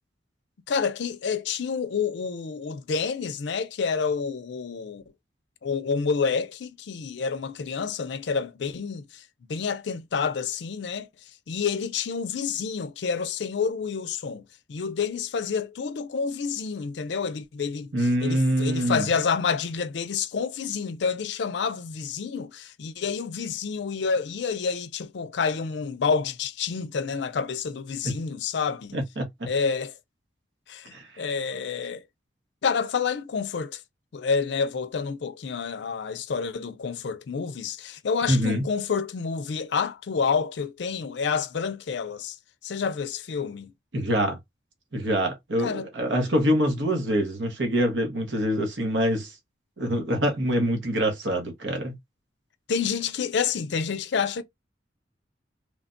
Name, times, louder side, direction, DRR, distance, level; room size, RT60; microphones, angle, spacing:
voice 1, 0.7-5.0 5.6-9.2 9.5-11.1 11.5-14.4 14.7-29.0 29.5-29.9 30.7-32.0 32.6-33.8 34.1-42.4 42.6-43.7 45.6-45.9 52.7-54.4, left 5 dB, 75° left, 0.4 m, -28 dB
voice 2, 17.9-19.1 28.9-29.5 30.9-31.2 38.3-38.6 43.9-44.4 44.9-49.3 49.8-51.9, equal, 85° right, 0.9 m, -25 dB
3.2 x 2.1 x 2.4 m
head